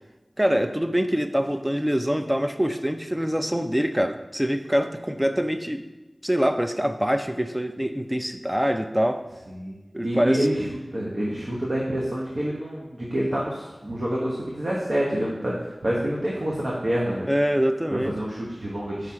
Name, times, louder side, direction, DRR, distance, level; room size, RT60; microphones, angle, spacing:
voice 1, 0.4-5.9 6.2-9.2 9.9-10.5 17.3-18.1, equal, 10° right, 8 dB, 0.4 m, -24 dB
voice 2, 10.0-10.7 10.9-17.3 17.9-19.1, right 1 dB, 65° right, -5 dB, 1.0 m, -27 dB
4.9 x 4.3 x 4.7 m, 1.1 s
wide cardioid pair, 40°, 0 cm